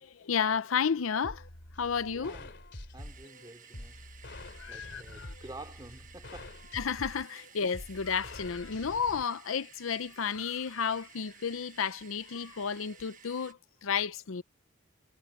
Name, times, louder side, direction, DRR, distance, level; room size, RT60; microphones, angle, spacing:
voice 1, 0.0-1.4 1.8-2.4 4.6-5.3 6.7-14.4, left 6 dB, 80° left, 0.6 m, -32 dB
sound 1, 1.2-9.2, left 1 dB, 60° left, 3.1 m, -47 dB
voice 2, 2.1-2.5 2.9-4.1 4.7-6.6, right 2 dB, 20° right, 3.3 m, -49 dB
sound 2, 3.0-13.5, right 7 dB, 40° right, 1.4 m, -55 dB
head